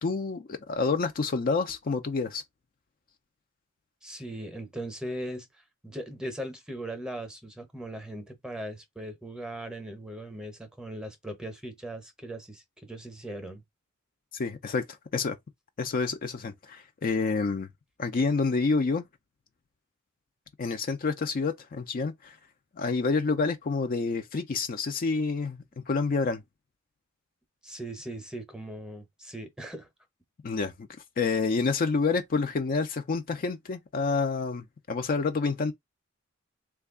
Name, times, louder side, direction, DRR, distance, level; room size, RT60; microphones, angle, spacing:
voice 1, 0.0-2.4 14.3-14.8 15.1-15.4 15.8-17.7 18.0-19.0 20.6-22.4 22.7-26.4 30.4-30.9 31.2-35.7, left 4 dB, 45° left, 0.4 m, -28 dB
voice 2, 4.0-5.5 5.8-13.6 27.6-29.9, right 1 dB, 5° right, 0.7 m, -39 dB
3.2 x 2.3 x 3.6 m
head